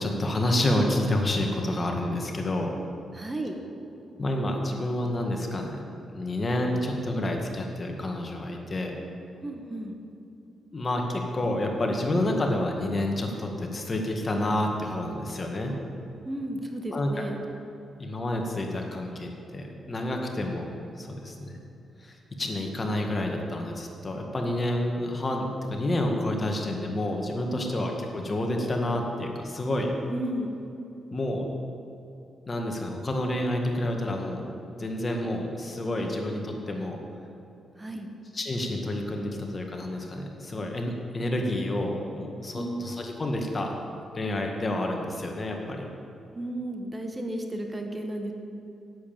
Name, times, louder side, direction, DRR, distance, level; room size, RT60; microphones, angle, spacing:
voice 1, 0.0-2.8 4.2-5.8 6.1-8.9 10.7-15.7 16.9-17.1 18.0-21.6 22.0-29.9 31.1-31.5 32.5-34.4 34.7-37.0 38.3-43.7 44.1-45.9, left 1 dB, 35° left, 2 dB, 1.8 m, -29 dB
voice 2, 3.1-3.6 9.4-10.0 16.2-17.4 27.5-27.8 30.1-30.6 37.8-38.1 42.5-42.9 46.3-48.3, right 1 dB, 25° right, 4 dB, 1.4 m, -33 dB
8.5 x 7.8 x 8.8 m, 2.7 s
supercardioid pair, 50°, 0 cm